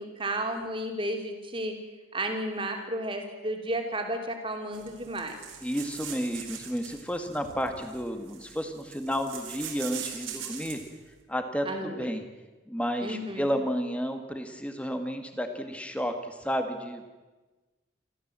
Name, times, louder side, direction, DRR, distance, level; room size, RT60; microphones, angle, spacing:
voice 1, 0.0-1.8 2.1-5.3 11.6-12.1 13.0-13.6, right 1 dB, 25° right, 3 dB, 3.0 m, -33 dB
sound 1, 4.7-10.9, right 8 dB, 90° right, 4.0 m, -42 dB
voice 2, 5.6-10.8 11.3-12.2 12.7-17.0, equal, 5° left, 6 dB, 1.8 m, -32 dB
28.5 x 14.0 x 7.6 m, 1.2 s
head